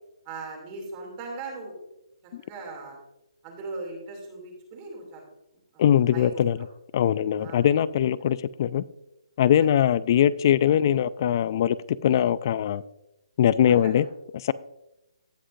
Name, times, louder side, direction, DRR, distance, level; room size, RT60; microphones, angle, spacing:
voice 1, 0.2-1.7 2.4-3.0 3.4-5.2 5.7-6.4 7.4-7.6 9.6-9.7 13.7-13.9, right 3 dB, 25° right, 0 dB, 2.9 m, -39 dB
voice 2, 5.8-6.6 6.9-8.8 9.4-11.8 12.0-12.8 13.4-14.1 14.4-14.5, left 10 dB, 40° left, 19 dB, 0.3 m, -21 dB
17.5 x 6.3 x 2.7 m, 0.89 s
hypercardioid pair, 155°, 3 cm